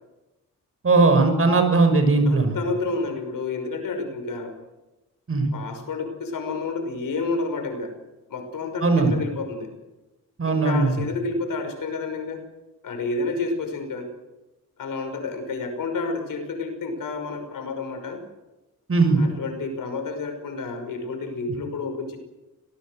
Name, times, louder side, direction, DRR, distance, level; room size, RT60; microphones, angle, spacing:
voice 1, 0.8-2.6 5.3-5.5 8.8-9.1 10.4-11.0 18.9-19.2, right 3 dB, 40° right, 6 dB, 6.5 m, -18 dB
voice 2, 2.3-4.5 5.5-7.9 8.3-9.7 10.5-12.4 12.8-14.1 14.8-18.2 19.2-22.2, left 3 dB, 75° left, 5 dB, 5.9 m, -30 dB
27.0 x 19.0 x 8.0 m, 1.1 s
cardioid pair, 95°, 33 cm